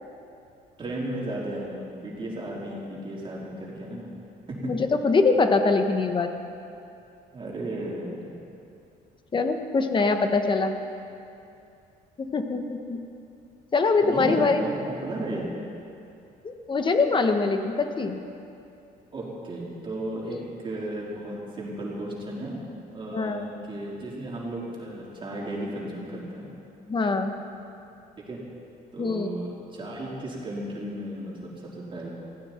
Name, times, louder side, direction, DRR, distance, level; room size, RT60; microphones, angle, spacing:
voice 1, 0.8-4.1 4.5-4.7 7.3-8.2 14.0-15.5 19.1-22.6 22.9-26.5 28.3-28.4 28.9-32.1, right 1 dB, 30° right, -5 dB, 4.2 m, -34 dB
voice 2, 4.6-6.3 9.3-10.7 12.2-13.0 13.7-14.6 16.4-18.2 20.3-20.4 23.1-23.5 26.9-27.4 29.0-29.3, left 4 dB, 30° left, 6 dB, 1.3 m, -23 dB
19.5 x 16.0 x 4.5 m, 2.6 s
cardioid pair, 110°, 17 cm